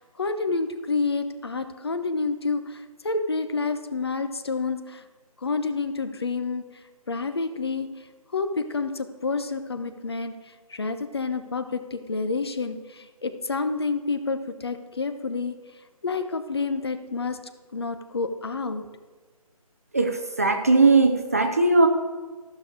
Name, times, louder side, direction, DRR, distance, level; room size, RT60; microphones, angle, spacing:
voice 1, 0.0-5.0 5.4-6.6 7.1-7.9 8.3-10.3 10.7-15.6 16.0-17.4 17.7-18.9, left 4 dB, 40° left, 9 dB, 0.7 m, -29 dB
voice 2, 19.9-21.9, right 3 dB, 25° right, 6 dB, 0.6 m, -19 dB
14.0 x 6.3 x 5.0 m, 1.3 s
figure-of-eight pair, 170°, 19 cm